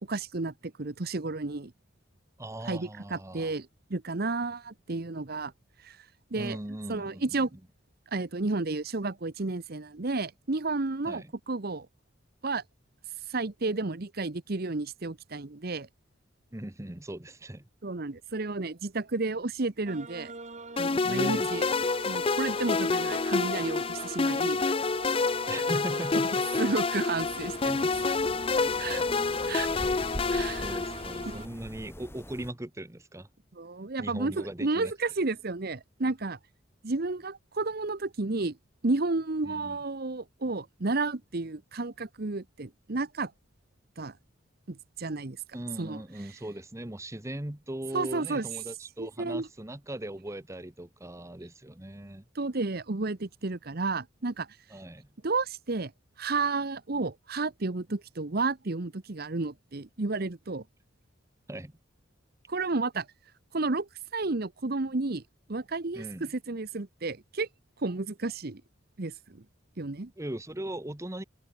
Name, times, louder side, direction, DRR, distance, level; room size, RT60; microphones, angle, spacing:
voice 1, 0.0-1.7 2.6-5.5 5.8-6.1 6.3-6.6 6.9-7.5 8.1-11.9 12.4-12.6 13.3-15.9 17.8-20.3 20.8-21.8 22.0-24.6 26.6-28.0 28.8-29.0 29.5-29.7 30.3-30.8 31.3-31.4 33.5-36.4 36.8-38.6 38.8-43.3 44.0-44.2 44.7-45.4 45.8-46.0 47.9-48.5 49.0-49.5 52.3-54.5 55.2-55.9 56.2-60.6 62.5-63.1 63.5-65.2 65.5-67.5 67.8-68.6 69.0-69.4 69.8-70.1, right 3 dB, 55° right, 1.0 m, -32 dB
voice 2, 2.4-3.5 6.3-7.2 11.0-11.3 16.5-17.7 21.0-21.5 25.5-26.6 28.9-29.0 30.6-33.3 34.0-34.9 39.4-39.8 45.5-52.2 54.7-55.1 61.5-61.7 65.9-66.3 70.2-71.2, right 1 dB, 15° right, 1.1 m, -39 dB
sound 1, 19.9-31.5, right 3 dB, 40° right, 2.4 m, -43 dB
sound 2, 20.8-31.4, left 4 dB, 30° left, 0.5 m, -28 dB
sound 3, 27.2-32.5, equal, 15° left, 4.9 m, -43 dB
head